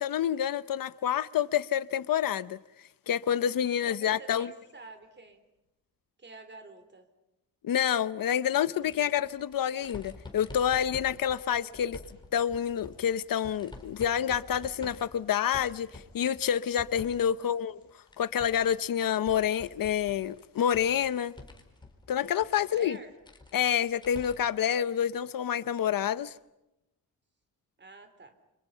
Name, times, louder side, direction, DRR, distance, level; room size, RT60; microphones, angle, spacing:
voice 1, 0.0-2.6 3.1-4.5 7.6-12.0 12.3-17.8 18.2-21.3 22.1-23.0 23.5-26.3, left 9 dB, 65° left, 0.8 m, -28 dB
voice 2, 3.7-5.4 6.2-7.1 8.8-9.0 11.6-12.0 17.2-17.6 22.5-23.1 27.8-28.4, right 3 dB, 30° right, 3.9 m, -49 dB
sound 1, 8.8-17.3 17.6-24.6 25.0-25.1 26.3-26.4, left 2 dB, 10° left, 4.5 m, -49 dB
30.0 x 27.0 x 5.7 m
wide cardioid pair, 165°, 36 cm